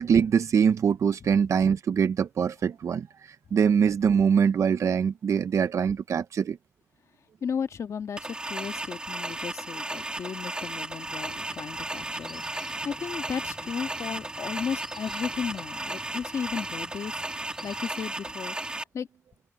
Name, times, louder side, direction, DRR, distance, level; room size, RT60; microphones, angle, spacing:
voice 1, 0.0-6.6, right 7 dB, 80° right, 0.5 m, -23 dB
voice 2, 7.4-19.1, left 7 dB, 90° left, 1.8 m, -35 dB
sound 1, 8.2-18.8, right 2 dB, 20° right, 2.1 m, -35 dB
sound 2, 11.0-17.9, equal, 5° right, 3.6 m, -51 dB
wide cardioid pair, 125°, 5 cm